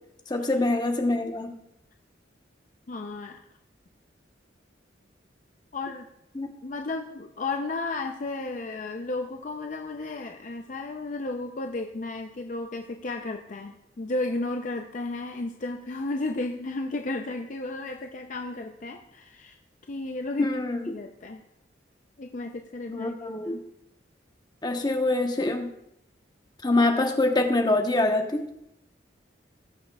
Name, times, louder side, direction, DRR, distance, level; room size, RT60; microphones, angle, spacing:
voice 1, 0.3-1.6 6.3-6.5 20.4-20.9 22.9-23.6 24.6-25.7 26.6-28.5, left 2 dB, 25° left, 3 dB, 0.9 m, -25 dB
voice 2, 2.9-3.4 5.7-6.1 6.6-19.6 19.9-20.5 20.8-21.4 22.2-23.2 23.4-23.6, left 2 dB, 45° left, 4 dB, 0.5 m, -33 dB
19.0 x 6.5 x 2.3 m, 0.82 s
head